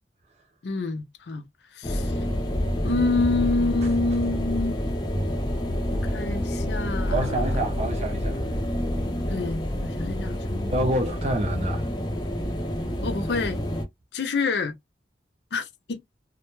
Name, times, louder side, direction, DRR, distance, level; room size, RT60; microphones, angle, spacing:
voice 1, 0.6-1.4 1.7-2.1 2.8-4.8 5.9-7.6 9.3-10.7 13.0-13.6 14.1-14.8 15.5-16.0, left 3 dB, 75° left, 0.5 m, -27 dB
sound 1, 1.8-13.8, left 1 dB, 25° left, 0.5 m, -28 dB
voice 2, 7.1-8.4 8.8-8.9 10.7-11.9, right 1 dB, 40° right, 0.4 m, -27 dB
2.1 x 2.1 x 3.0 m
head